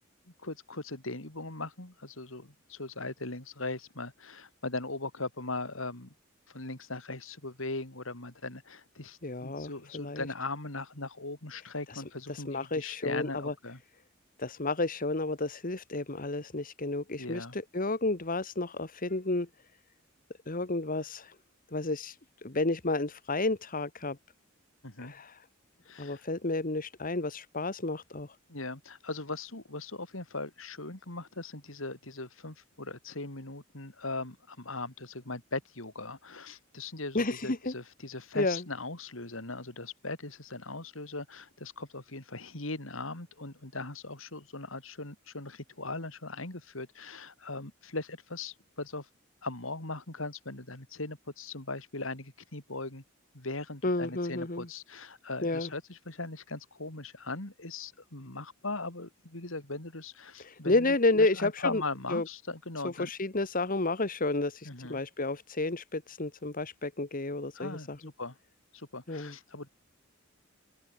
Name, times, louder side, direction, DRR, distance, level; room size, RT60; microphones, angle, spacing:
voice 1, 0.4-6.1 6.5-13.8 17.2-17.5 24.8-25.1 25.9-26.2 28.5-49.1 49.4-53.0 53.3-63.1 64.6-65.0 67.5-67.9 68.2-68.3 68.7-69.7, left 3 dB, 70° left, 4.0 m, -39 dB
voice 2, 9.2-10.3 11.9-12.0 12.3-13.5 14.4-19.5 20.5-21.3 21.7-22.2 22.4-24.2 25.0-25.4 26.0-28.3 37.1-37.7 38.3-38.6 53.8-54.7 55.4-55.7 60.4-61.8 62.1-62.2 62.8-68.0 69.1-69.3, left 2 dB, 40° left, 1.6 m, -31 dB
open air
head